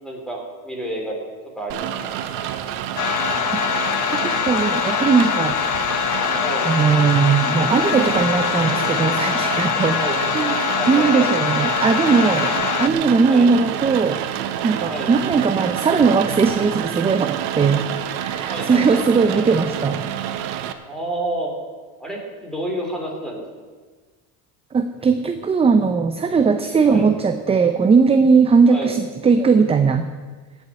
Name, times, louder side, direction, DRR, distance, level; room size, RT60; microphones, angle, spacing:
voice 1, 0.0-1.2 1.6-2.1 6.4-6.7 10.0-10.2 10.8-11.3 13.3-13.5 14.9-15.1 18.5-19.4 20.9-21.5 22.0-23.4 26.9-27.1 28.7-28.9, right 1 dB, ahead, -1 dB, 3.7 m, -29 dB
Rain, 1.7-20.7, right 10 dB, 70° right, 1.3 m, -28 dB
sound 1, 3.0-12.9, left 8 dB, 45° left, 1.2 m, -23 dB
voice 2, 4.1-5.6 6.6-10.6 10.9-12.5 12.8-14.2 14.6-17.8 18.2-20.1 24.7-30.1, right 5 dB, 15° right, 8 dB, 0.6 m, -18 dB
16.5 x 7.0 x 9.7 m, 1.4 s
cardioid pair, 140°, 43 cm